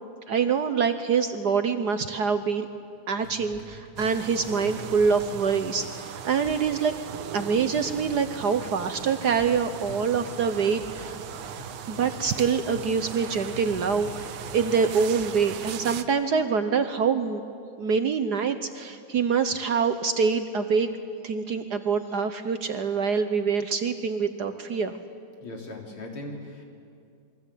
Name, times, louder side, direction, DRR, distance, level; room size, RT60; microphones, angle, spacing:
voice 1, 0.3-2.7 3.1-6.9 7.3-11.2 11.9-17.4 17.8-20.9 21.2-24.9, right 6 dB, 60° right, 9 dB, 1.3 m, -25 dB
sound 1, 3.2-15.2, equal, 40° left, 6.4 m, -46 dB
sound 2, 4.0-16.0, right 9 dB, 75° right, 1.8 m, -39 dB
voice 2, 25.4-26.7, left 2 dB, 75° left, 1 dB, 4.4 m, -38 dB
28.5 x 22.5 x 8.5 m, 2.3 s
omnidirectional pair, 2.4 m